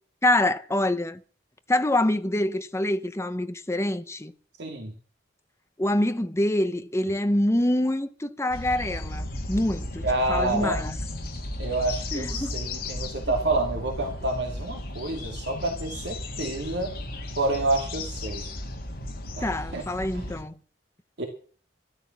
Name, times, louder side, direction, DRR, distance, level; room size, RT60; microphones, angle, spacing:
voice 1, 0.2-1.2 1.7-4.3 5.8-10.9 12.1-12.5 19.4-20.6, left 1 dB, 15° left, 0.8 m, -25 dB
voice 2, 4.6-4.9 10.0-10.8 11.6-16.9 17.4-18.5 19.4-19.8 20.1-20.2 21.2-21.3, right 2 dB, 65° right, 2.6 m, -28 dB
sound 1, 8.5-20.4, left 1 dB, 55° left, 3.1 m, -35 dB
13.5 x 12.5 x 6.0 m
head